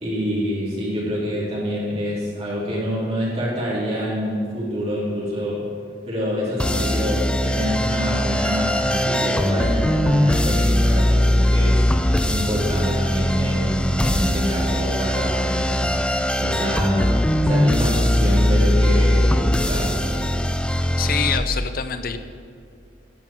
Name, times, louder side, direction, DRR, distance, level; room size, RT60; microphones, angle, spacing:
voice 1, 0.0-5.7 6.1-11.9 12.3-15.8 16.4-17.2 17.5-20.3, equal, 35° right, -7 dB, 3.6 m, -26 dB
sound 1, 6.6-21.4, left 1 dB, 5° left, 0.4 m, -20 dB
voice 2, 21.0-22.2, left 6 dB, 55° left, 9 dB, 0.7 m, -25 dB
12.0 x 6.1 x 7.6 m, 2.3 s
head